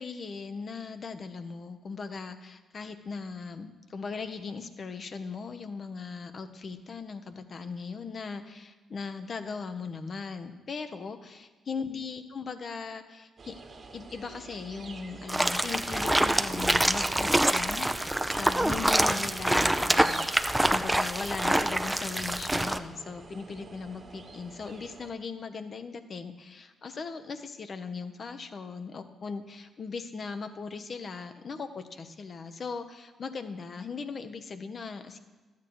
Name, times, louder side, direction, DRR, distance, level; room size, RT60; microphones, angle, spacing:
voice 1, 0.0-13.5 13.9-35.2, left 5 dB, 50° left, 8 dB, 0.9 m, -39 dB
sound 1, 13.4-25.1, right 3 dB, 50° right, 1.6 m, -47 dB
sound 2, 15.3-22.8, right 1 dB, 10° right, 0.6 m, -26 dB
12.0 x 8.4 x 4.8 m, 1.3 s
hypercardioid pair, 50°, 0 cm